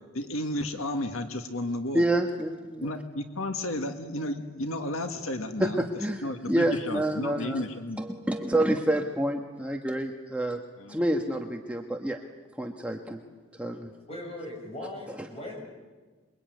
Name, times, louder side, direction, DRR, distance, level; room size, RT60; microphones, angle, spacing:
voice 1, 0.1-2.1 2.8-5.8 6.2-8.0 10.8-11.0, left 1 dB, 80° left, 6 dB, 1.8 m, -32 dB
voice 2, 1.9-2.9 5.6-7.6 8.0-10.6 10.9-12.2 12.6-13.2 13.5-13.9, right 1 dB, 5° right, 2 dB, 1.3 m, -28 dB
voice 3, 14.1-15.6, left 1 dB, 30° left, 0 dB, 7.8 m, -39 dB
27.0 x 22.5 x 9.3 m, 1.3 s
head